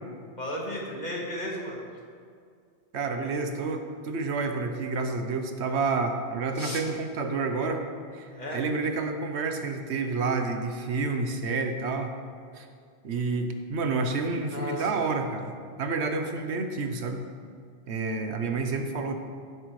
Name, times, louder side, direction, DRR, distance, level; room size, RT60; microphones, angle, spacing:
voice 1, 0.4-1.8 6.6-6.8 8.3-8.6 14.5-15.1, left 1 dB, 45° left, -2 dB, 1.7 m, -34 dB
voice 2, 2.9-7.8 8.1-12.1 12.5-12.7 13.0-17.2 17.9-19.1, right 4 dB, 90° right, 5 dB, 1.2 m, -29 dB
15.5 x 7.9 x 3.2 m, 2.2 s
omnidirectional pair, 1.1 m